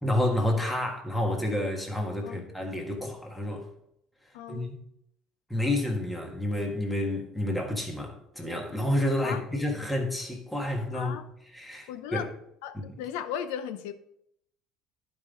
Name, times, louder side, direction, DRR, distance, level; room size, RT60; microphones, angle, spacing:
voice 1, 0.0-3.7 4.5-4.7 5.5-11.2 11.5-12.2, left 1 dB, 5° left, 1.6 m, -29 dB
voice 2, 2.2-2.5 4.3-4.7 9.2-9.4 10.9-11.3 11.9-13.9, left 9 dB, 90° left, 0.6 m, -36 dB
11.0 x 5.3 x 3.7 m
cardioid pair, 130°, 0 cm